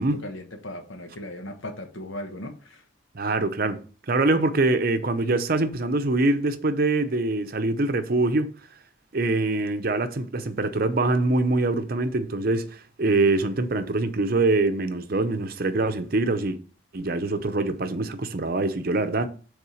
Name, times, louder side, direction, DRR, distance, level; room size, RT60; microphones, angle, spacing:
voice 1, 0.2-2.8, left 1 dB, 75° left, 1.1 m, -37 dB
voice 2, 3.1-8.5 9.1-16.6 16.9-19.3, right 2 dB, 50° right, 0.7 m, -24 dB
6.9 x 3.6 x 4.9 m
head